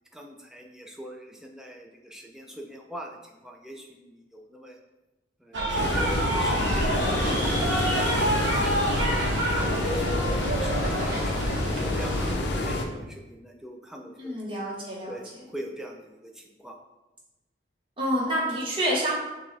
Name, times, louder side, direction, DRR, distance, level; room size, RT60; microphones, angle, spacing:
voice 1, 0.1-4.8 5.4-6.9 7.3-8.1 8.4-10.1 10.5-11.5 12.0-14.4 15.1-16.8, right 1 dB, 5° right, 1 dB, 0.3 m, -42 dB
sound 1, 5.5-12.3, right 1 dB, 75° right, 0.8 m, -28 dB
sound 2, 5.7-12.8, left 2 dB, 65° left, 0.5 m, -28 dB
voice 2, 14.2-15.2 18.0-19.2, equal, 30° right, -4 dB, 1.1 m, -28 dB
5.9 x 2.3 x 3.2 m, 1.0 s
head